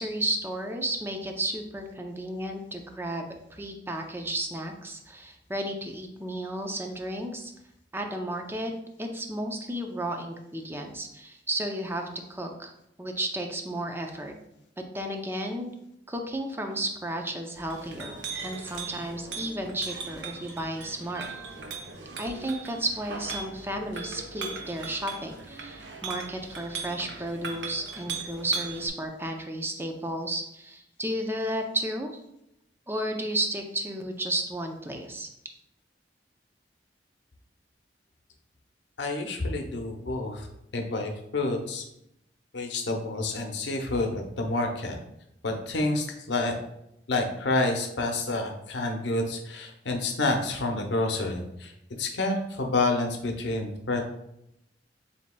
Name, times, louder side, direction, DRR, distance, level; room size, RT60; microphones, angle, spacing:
voice 1, 0.0-7.5 7.9-8.7 9.0-12.7 13.0-14.3 14.9-15.7 16.1-21.3 22.2-32.1 32.9-35.3, right 1 dB, 15° right, 4 dB, 0.5 m, -33 dB
Chink clink, 17.5-28.9, right 5 dB, 75° right, 0.8 m, -39 dB
voice 2, 39.0-40.5 40.7-41.8 42.5-45.0 45.4-46.6 47.1-51.7 52.0-54.0, left 2 dB, 90° left, 3 dB, 0.7 m, -28 dB
7.1 x 2.8 x 2.2 m, 0.81 s
head